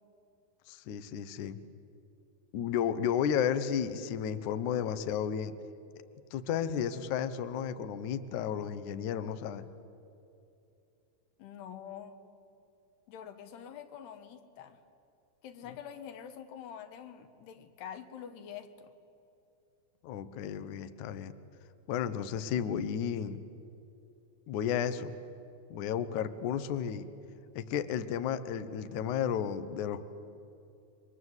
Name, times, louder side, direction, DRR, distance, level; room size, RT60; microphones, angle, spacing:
voice 1, 0.7-1.6 2.5-5.5 6.3-9.6 20.0-21.3 21.9-23.4 24.5-25.1 25.7-27.1 27.5-30.1, left 8 dB, 90° left, 11 dB, 1.7 m, -33 dB
voice 2, 11.4-12.2 13.1-14.8 15.4-18.9, left 8 dB, 70° left, 9 dB, 3.3 m, -46 dB
30.0 x 23.5 x 8.1 m, 2.8 s
omnidirectional pair, 5.1 m